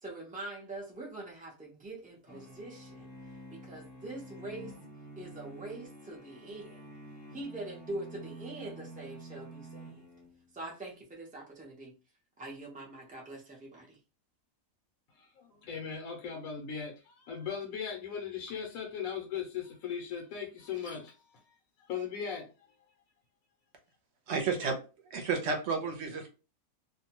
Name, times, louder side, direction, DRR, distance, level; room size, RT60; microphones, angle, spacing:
voice 1, 0.0-3.1 3.5-4.8 5.2-6.9 7.3-10.0 10.5-12.0 12.4-14.0, right 2 dB, 10° right, 0.4 m, -43 dB
sound 1, 2.3-10.6, right 1 dB, 20° left, 0.7 m, -49 dB
voice 2, 15.2-21.4 21.9-22.5, left 7 dB, 75° left, 1.0 m, -38 dB
voice 3, 24.3-24.8 25.1-26.3, right 5 dB, 60° right, 0.8 m, -31 dB
2.6 x 2.2 x 2.8 m
omnidirectional pair, 1.5 m